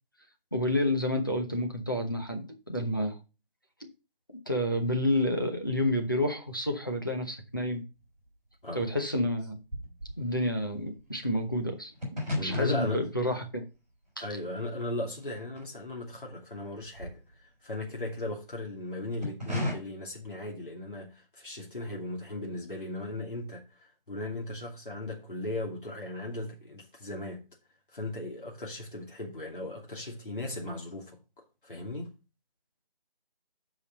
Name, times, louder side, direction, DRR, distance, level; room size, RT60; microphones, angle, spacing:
voice 1, 0.5-3.2 4.5-7.8 8.7-9.6 10.2-13.6 14.2-14.3, left 1 dB, 20° left, 1.0 m, -29 dB
sound 1, 7.5-7.7 7.9-16.3 16.6-18.3 18.9-19.7, left 1 dB, ahead, 2.9 m, -38 dB
voice 2, 12.4-13.1 14.2-17.2 17.6-27.4 27.9-32.1, left 2 dB, 60° left, 2.7 m, -37 dB
8.1 x 5.2 x 5.2 m
figure-of-eight pair, 175°, 29 cm